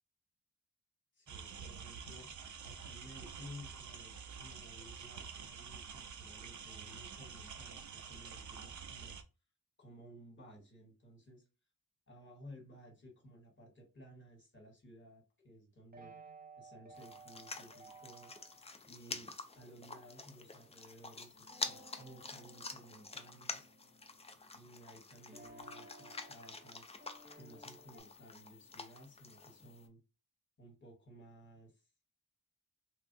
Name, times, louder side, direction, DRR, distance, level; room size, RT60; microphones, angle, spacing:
voice 1, 1.2-2.3 2.6-9.2 9.8-11.4 12.1-16.1 16.6-18.3 18.8-23.7 24.5-26.9 27.3-30.0 30.6-31.7, equal, 35° left, 1 dB, 1.3 m, -56 dB
sound 1, 1.3-9.2, right 6 dB, 60° right, 0.5 m, -48 dB
sound 2, 15.9-18.7 21.4-24.8 25.3-28.0, right 3 dB, 30° right, 0.7 m, -57 dB
sound 3, 17.0-29.9, left 3 dB, 20° left, 0.3 m, -48 dB
3.1 x 2.3 x 2.6 m, 0.31 s
wide cardioid pair, 110°, 33 cm